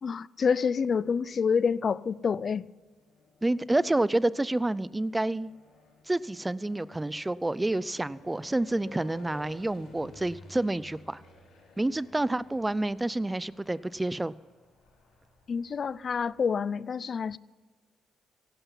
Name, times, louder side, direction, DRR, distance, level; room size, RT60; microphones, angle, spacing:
voice 1, 0.0-2.7 15.5-17.4, left 6 dB, 45° left, 0.4 m, -28 dB
sound 1, 1.2-1.7 2.4-16.5, left 3 dB, 80° left, 5.5 m, -54 dB
voice 2, 3.4-5.5 6.1-11.2 11.8-14.3, right 2 dB, 15° right, 0.5 m, -28 dB
17.0 x 11.5 x 5.6 m
cardioid pair, 90°, 0 cm